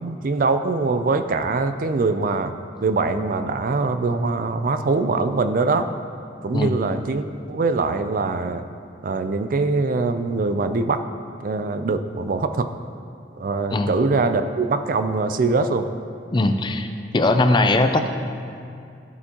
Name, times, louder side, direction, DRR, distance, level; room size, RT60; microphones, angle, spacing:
voice 1, 0.0-2.5 2.8-5.9 6.4-8.6 9.0-11.0 11.4-12.7 13.4-15.9, right 3 dB, 50° right, 9 dB, 0.4 m, -23 dB
voice 2, 16.3-16.9 17.1-18.1, left 2 dB, 25° left, 7 dB, 0.4 m, -19 dB
13.0 x 8.1 x 2.9 m, 2.5 s
head